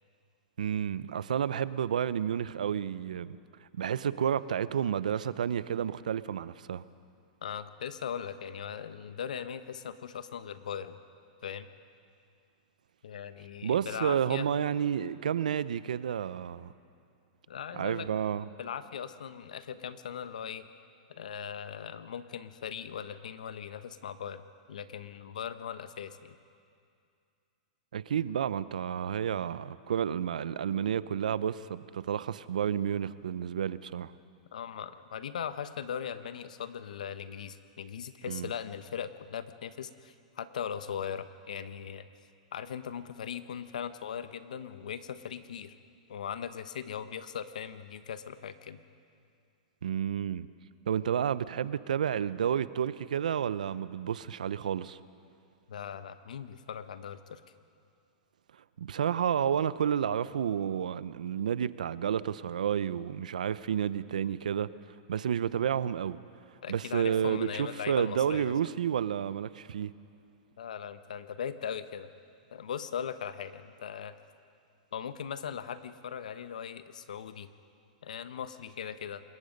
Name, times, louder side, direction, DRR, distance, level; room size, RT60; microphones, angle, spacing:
voice 1, 0.6-3.4 3.7-6.8 13.6-16.7 17.7-18.4 27.9-34.1 38.3-38.5 49.8-50.5 50.9-55.0 58.8-64.7 65.1-66.2 66.7-69.9, right 8 dB, 85° right, 16 dB, 0.7 m, -30 dB
voice 2, 7.4-11.0 11.4-11.7 13.0-14.5 17.5-18.1 18.6-20.7 21.1-26.3 34.5-42.0 42.5-45.8 46.1-48.8 55.7-57.4 66.6-68.5 70.6-72.1 72.5-74.1 74.9-77.5 78.0-79.2, left 8 dB, 80° left, 12 dB, 1.1 m, -39 dB
26.5 x 21.0 x 5.3 m, 2.4 s
hypercardioid pair, 125°, 4 cm